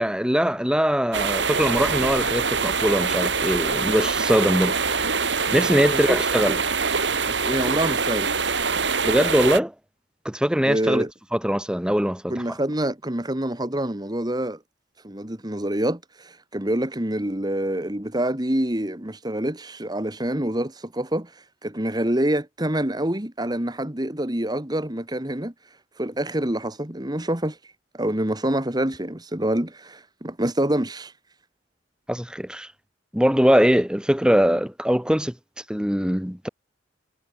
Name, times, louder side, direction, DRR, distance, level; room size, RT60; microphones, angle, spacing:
voice 1, 0.0-4.8 5.5-6.6 9.0-9.7 10.3-11.0 11.3-12.3 32.1-32.7 33.1-35.3 35.7-36.5, equal, 5° right, 1.6 m, -21 dB
sound 1, 1.1-9.6, right 5 dB, 75° right, 4.5 m, -24 dB
voice 2, 7.3-8.5 10.7-11.1 12.3-14.6 15.0-25.5 26.0-31.1, right 1 dB, 20° right, 2.0 m, -26 dB
head